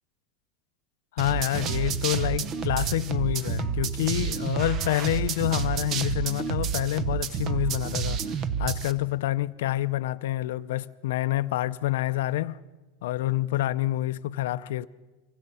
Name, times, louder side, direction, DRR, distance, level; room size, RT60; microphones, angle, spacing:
voice 1, 1.1-12.6 13.0-14.9, left 15 dB, 80° left, 0.6 m, -28 dB
sound 1, 1.2-8.9, right 7 dB, 35° right, 0.9 m, -29 dB
25.0 x 24.5 x 5.6 m
supercardioid pair, 155°, 0 cm